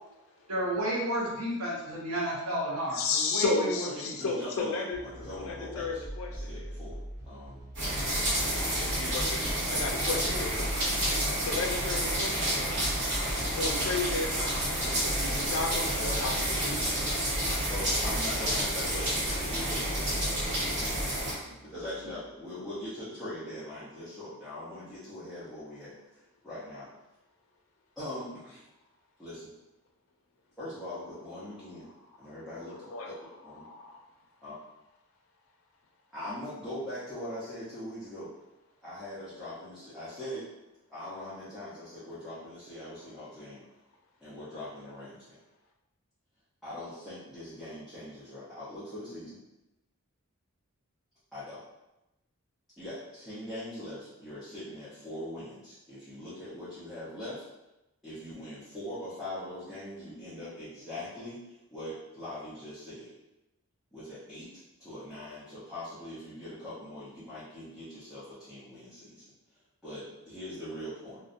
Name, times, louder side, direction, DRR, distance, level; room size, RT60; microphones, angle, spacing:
voice 1, 0.5-4.1 21.0-21.1, right 1 dB, 80° right, -3 dB, 0.7 m, -32 dB
voice 2, 2.9-5.0 5.4-6.3 6.5-6.7 8.3-9.2 9.7-10.7 11.4-12.8 13.3-16.9 21.4-21.5 22.5-22.7 32.6-33.1 33.6-34.0, left 4 dB, 65° left, 1 dB, 0.4 m, -33 dB
voice 3, 3.9-7.6 8.8-9.1 17.7-21.0 21.6-26.0 26.4-26.9 28.0-28.6 29.2-29.5 30.6-31.9 32.2-33.1 33.4-33.7 34.4-34.6 36.1-38.3 38.8-40.5 40.9-43.6 44.2-45.4 46.6-49.4 51.3-51.6 52.8-57.4 58.0-61.4 61.7-63.1 63.9-64.5 64.8-69.2 69.8-71.2, left 1 dB, ahead, -13 dB, 0.6 m, -41 dB
sound 1, 4.9-22.2, right 1 dB, 30° right, 1.2 m, -42 dB
sound 2, 7.8-21.3, right 1 dB, 55° right, 1.0 m, -30 dB
2.6 x 2.1 x 2.5 m, 0.95 s
head